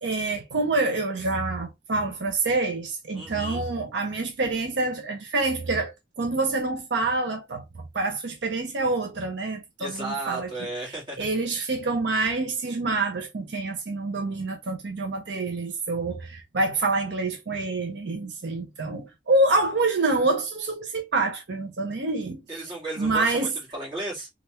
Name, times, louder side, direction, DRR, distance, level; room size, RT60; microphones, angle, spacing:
voice 1, 0.0-10.5 11.2-22.4 23.0-23.5, right 3 dB, 75° right, 0.6 m, -27 dB
voice 2, 3.1-3.6 9.8-11.2 22.5-24.3, right 2 dB, 25° right, 1.6 m, -34 dB
3.2 x 2.5 x 2.8 m
head